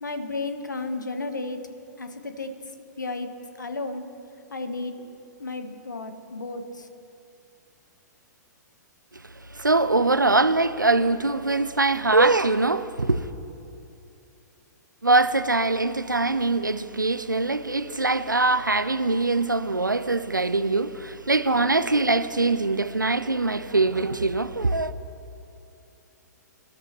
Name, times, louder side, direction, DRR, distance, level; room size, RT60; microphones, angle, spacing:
voice 1, 0.0-1.6 2.0-2.5 3.0-3.3 3.6-4.0 4.5-6.9, left 3 dB, 75° left, 1.3 m, -33 dB
voice 2, 9.5-13.3 15.0-24.9, right 3 dB, 85° right, 0.6 m, -22 dB
25.5 x 13.0 x 3.1 m
figure-of-eight pair, 115°, 10 cm